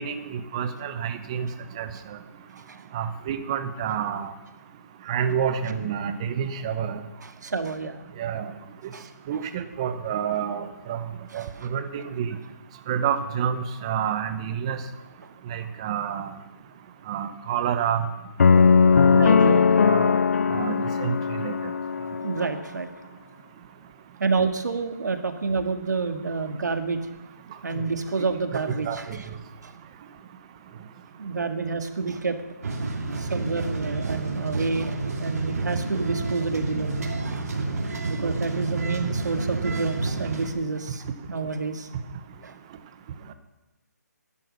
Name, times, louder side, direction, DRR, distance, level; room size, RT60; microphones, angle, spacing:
voice 1, 0.0-1.5 1.8-1.9 2.9-4.3 5.1-7.0 8.2-8.5 9.3-11.0 11.3-12.4 12.9-14.8 15.5-16.4 17.1-18.1 19.0-20.2 20.5-21.5 28.8-29.2, right 8 dB, 20° right, 10 dB, 0.7 m, -29 dB
voice 2, 7.2-8.0 8.9-9.1 11.3-11.5 19.1-19.7 22.2-22.9 24.2-27.0 27.6-29.1 29.6-29.7 31.2-32.4 33.2-37.5 38.0-41.9 42.4-42.5, right 4 dB, 75° right, 7 dB, 1.9 m, -29 dB
sound 1, 18.4-22.5, left 5 dB, 50° left, 0.4 m, -19 dB
sound 2, 32.6-40.5, right 3 dB, 55° right, 2.9 m, -29 dB
15.0 x 11.0 x 6.4 m, 1.1 s
hypercardioid pair, 170°, 10 cm